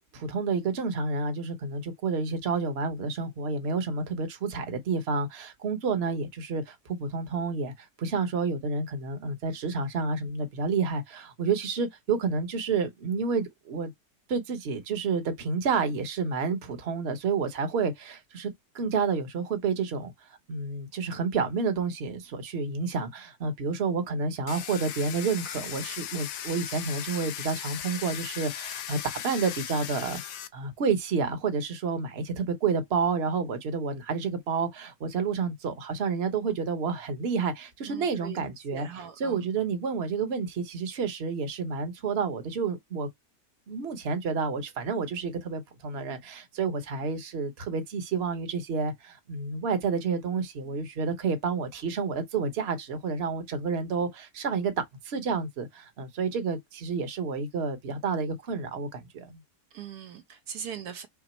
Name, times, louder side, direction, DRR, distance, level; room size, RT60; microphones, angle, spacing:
voice 1, 0.1-13.9 14.3-20.1 20.5-38.9 39.2-43.1 43.7-59.4, right 5 dB, 45° right, 1.1 m, -30 dB
Domestic sounds home sounds, 24.5-30.5, left 10 dB, 85° left, 1.3 m, -37 dB
voice 2, 37.9-38.4 38.7-39.4 59.7-61.1, right 7 dB, 75° right, 1.1 m, -40 dB
5.9 x 2.0 x 4.3 m
omnidirectional pair, 1.8 m